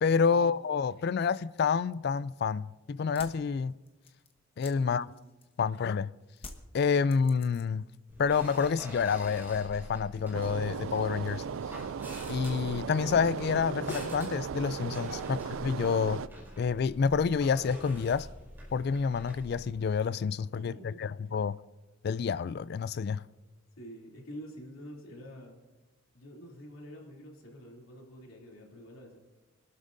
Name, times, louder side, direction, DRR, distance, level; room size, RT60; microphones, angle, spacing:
voice 1, 0.0-3.7 4.6-5.0 5.6-6.1 6.7-7.8 8.2-11.4 12.3-16.2 16.6-18.3 18.7-20.7 21.0-21.6 22.0-23.2, left 5 dB, 50° left, 0.3 m, -28 dB
sound 1, 3.0-5.7 6.4-7.9 8.2-8.8, left 3 dB, 30° left, 1.1 m, -50 dB
voice 2, 4.8-5.1 15.2-15.5 20.5-21.3 23.8-25.5 26.1-29.2, equal, 80° left, 2.9 m, -47 dB
sound 2, 8.1-19.8, equal, 10° right, 4.7 m, -46 dB
sound 3, 10.3-16.3, right 6 dB, 75° right, 0.4 m, -37 dB
25.5 x 12.5 x 2.6 m
head